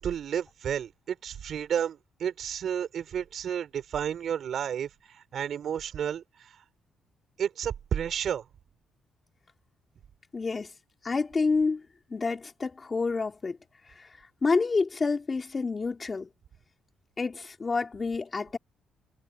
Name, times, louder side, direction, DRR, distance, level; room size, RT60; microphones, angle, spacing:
voice 1, 0.0-6.6 7.4-8.4, right 8 dB, 65° right, 4.8 m, -32 dB
voice 2, 10.3-10.7 11.0-11.8 12.1-13.6 14.0-14.1 14.4-16.3 17.2-18.6, left 4 dB, 30° left, 2.6 m, -28 dB
cardioid pair, 90°, 0 cm